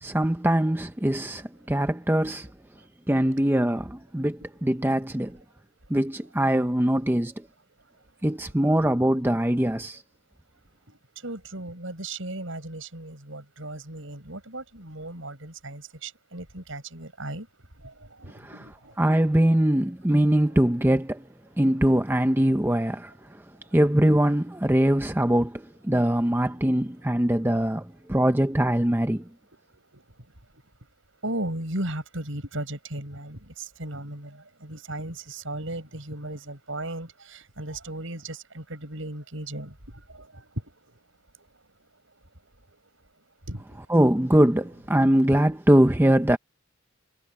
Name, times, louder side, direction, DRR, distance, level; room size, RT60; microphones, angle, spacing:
voice 1, 0.0-2.5 3.1-5.4 5.9-7.3 8.2-10.0 18.4-18.5 19.0-21.2 21.6-23.1 23.7-27.8 28.1-29.2 43.9-46.4, right 1 dB, 10° right, 0.6 m, -22 dB
voice 2, 11.2-17.5 18.2-18.7 19.2-19.5 29.9-30.0 31.2-33.4 33.8-39.7 43.5-43.6 44.5-44.7 45.1-45.2, right 1 dB, 65° right, 6.3 m, -36 dB
head